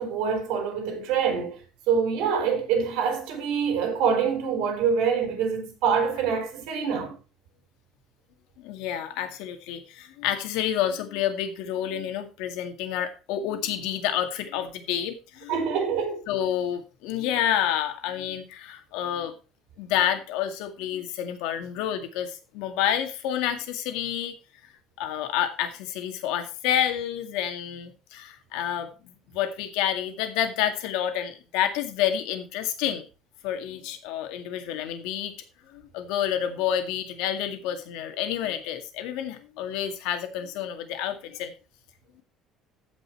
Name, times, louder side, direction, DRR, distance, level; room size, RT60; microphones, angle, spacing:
voice 1, 0.0-1.6 1.9-7.2 15.5-16.2, right 6 dB, 75° right, 3.8 m, -25 dB
voice 2, 8.6-15.5 16.3-19.3 19.8-24.3 25.0-33.1 33.4-35.3 35.7-41.5, left 10 dB, 85° left, 2.0 m, -29 dB
15.0 x 5.5 x 4.5 m
cardioid pair, 160°, 0 cm